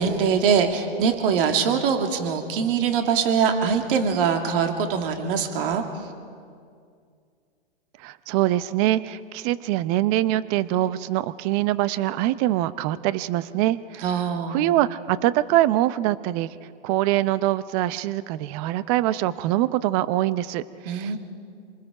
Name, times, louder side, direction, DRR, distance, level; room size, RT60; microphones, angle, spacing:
voice 1, 0.0-5.8 14.0-14.6 20.9-21.2, right 6 dB, 60° right, 5 dB, 2.4 m, -23 dB
voice 2, 8.0-14.1 14.5-16.6 16.8-21.2, right 14 dB, 35° right, 16 dB, 0.7 m, -24 dB
27.0 x 20.0 x 5.0 m, 2.3 s
hypercardioid pair, 130°, 31 cm